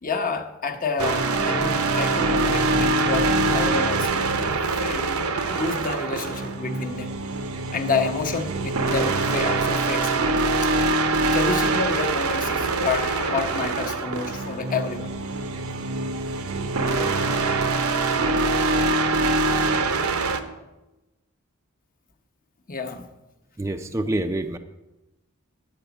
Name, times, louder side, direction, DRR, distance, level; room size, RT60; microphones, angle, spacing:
voice 1, 0.0-7.2 7.7-10.3 10.6-10.7 11.3-15.1 22.7-23.1, left 4 dB, 40° left, 5 dB, 0.9 m, -29 dB
sound 1, 1.0-20.4, right 3 dB, 75° right, 0.8 m, -24 dB
voice 2, 23.6-24.6, right 1 dB, 15° right, 6 dB, 0.4 m, -26 dB
10.0 x 5.0 x 8.0 m, 1.0 s
head